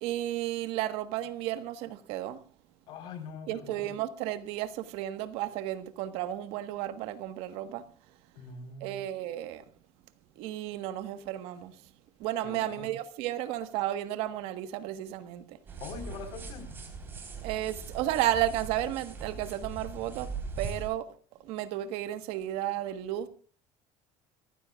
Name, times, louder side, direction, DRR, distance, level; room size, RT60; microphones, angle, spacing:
voice 1, 0.0-2.4 3.5-8.2 8.8-9.7 10.3-11.9 12.2-15.6 17.4-21.1 21.4-23.3, right 13 dB, 65° right, 1.4 m, -33 dB
voice 2, 2.9-3.9 8.4-9.0 12.4-12.9 15.8-16.7, left 5 dB, 55° left, 4.1 m, -43 dB
sound 1, 15.7-20.9, right 4 dB, 20° right, 3.9 m, -40 dB
30.0 x 15.0 x 2.4 m
cardioid pair, 165°, 11 cm